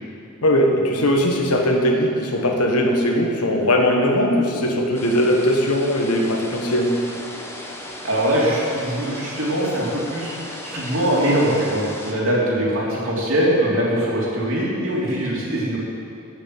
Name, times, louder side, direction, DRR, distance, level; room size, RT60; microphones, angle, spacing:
voice 1, 0.4-7.1, equal, 90° left, 2 dB, 1.5 m, -19 dB
sound 1, 4.9-12.1, left 1 dB, 10° left, 1.0 m, -36 dB
voice 2, 8.0-15.8, right 1 dB, 60° right, -5 dB, 3.1 m, -22 dB
9.1 x 8.4 x 7.8 m, 2.6 s
head